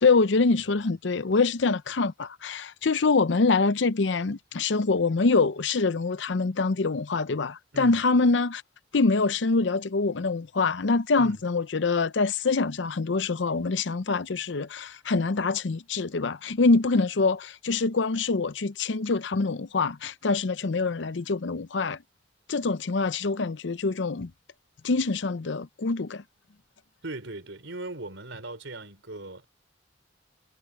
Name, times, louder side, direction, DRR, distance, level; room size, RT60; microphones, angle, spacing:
voice 1, 0.0-8.6 8.9-22.0 22.5-24.3 24.8-26.2, left 3 dB, 75° left, 0.6 m, -25 dB
voice 2, 27.0-29.5, right 2 dB, 80° right, 4.1 m, -39 dB
head